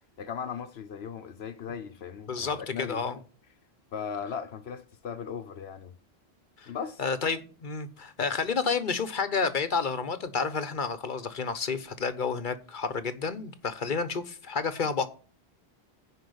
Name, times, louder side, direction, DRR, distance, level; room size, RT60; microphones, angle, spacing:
voice 1, 0.2-3.1 3.9-5.9 6.7-7.0, left 7 dB, 75° left, 1.1 m, -37 dB
voice 2, 2.3-3.2 6.6-6.7 7.0-15.1, left 5 dB, 50° left, 1.0 m, -30 dB
10.0 x 4.9 x 8.0 m
omnidirectional pair, 1.1 m